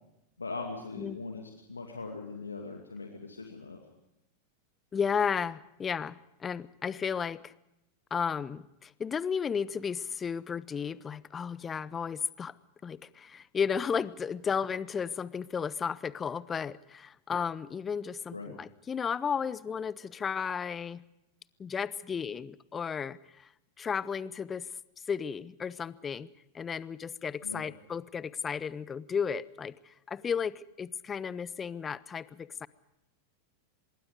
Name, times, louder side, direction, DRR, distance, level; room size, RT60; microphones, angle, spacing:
voice 1, 0.4-3.8 18.3-18.5 27.4-27.6, left 3 dB, 80° left, 2 dB, 2.4 m, -40 dB
voice 2, 4.9-7.5 8.1-12.5 12.8-21.0 21.6-23.5 23.8-24.7 25.1-26.3 26.5-32.7, left 6 dB, 20° left, 20 dB, 0.8 m, -34 dB
25.5 x 22.0 x 5.1 m, 0.89 s
figure-of-eight pair, 90°, 0 cm